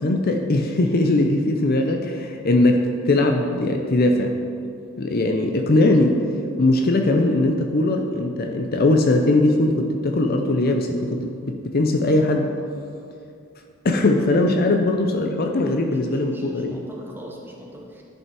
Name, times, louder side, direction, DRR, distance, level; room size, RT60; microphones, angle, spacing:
voice 1, 0.0-4.3 5.0-6.2 6.6-12.5 13.8-16.8, left 2 dB, 45° left, 4 dB, 0.6 m, -20 dB
voice 2, 15.9-18.0, equal, 10° right, -2 dB, 1.1 m, -42 dB
11.0 x 5.4 x 4.8 m, 2.5 s
head